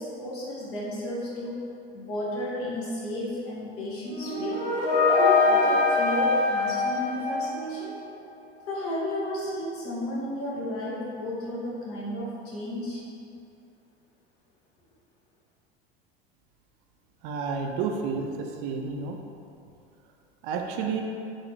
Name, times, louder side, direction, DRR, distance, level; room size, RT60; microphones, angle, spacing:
voice 1, 0.0-1.6 1.9-4.6 5.1-8.0 8.7-13.0, left 1 dB, 45° left, -5 dB, 1.2 m, -33 dB
sound 1, 4.1-8.0, left 3 dB, 90° left, 0.7 m, -23 dB
voice 2, 17.2-19.2 20.4-21.0, right 5 dB, 50° right, 2 dB, 0.4 m, -30 dB
4.1 x 3.1 x 2.7 m, 2.6 s
hypercardioid pair, 80°, 31 cm